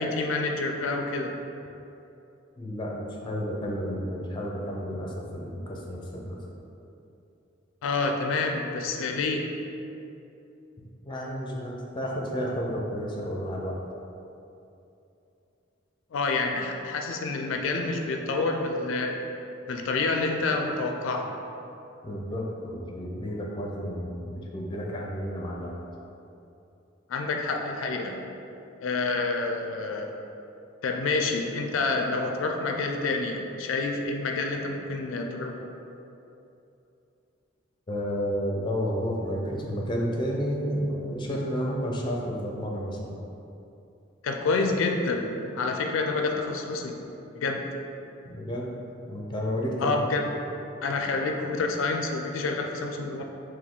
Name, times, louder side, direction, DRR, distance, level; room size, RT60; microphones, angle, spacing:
voice 1, 0.0-1.4 7.8-9.5 16.1-19.2 19.7-21.3 27.1-28.2 28.8-30.2 30.8-35.7 44.2-47.0 47.3-47.7 49.8-50.3 50.8-53.2, left 3 dB, 90° left, 3 dB, 0.4 m, -28 dB
voice 2, 2.6-6.4 10.8-13.8 22.0-25.7 37.9-43.2 48.2-48.7 49.1-50.0, equal, 25° left, -2 dB, 0.5 m, -31 dB
4.1 x 2.6 x 3.6 m, 2.8 s
head